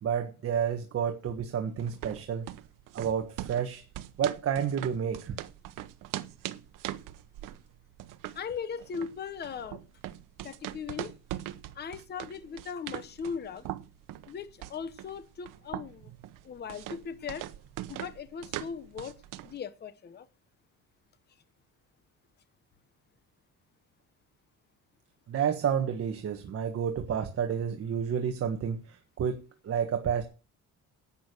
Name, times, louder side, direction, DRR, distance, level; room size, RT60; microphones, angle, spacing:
voice 1, 0.0-2.5 2.9-3.8 4.2-5.4 25.3-29.4 29.6-30.2, right 8 dB, 45° right, 5 dB, 1.5 m, -30 dB
sound 1, 1.8-19.6, right 14 dB, 85° right, 1.0 m, -42 dB
voice 2, 8.3-9.8 10.4-11.1 11.7-13.7 14.3-16.1 16.4-17.4 17.9-19.1 19.4-20.3, left 6 dB, 30° left, 12 dB, 1.0 m, -38 dB
11.5 x 8.7 x 6.3 m, 0.33 s
cardioid pair, 160°, 32 cm